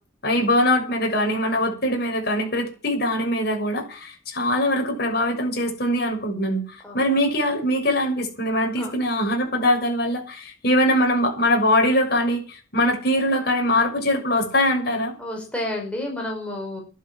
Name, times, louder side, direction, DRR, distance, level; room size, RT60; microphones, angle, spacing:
voice 1, 0.2-15.1, left 1 dB, 50° left, 2 dB, 6.5 m, -22 dB
voice 2, 15.2-16.8, left 1 dB, 5° left, -1 dB, 5.0 m, -30 dB
13.5 x 12.0 x 7.5 m, 0.37 s
head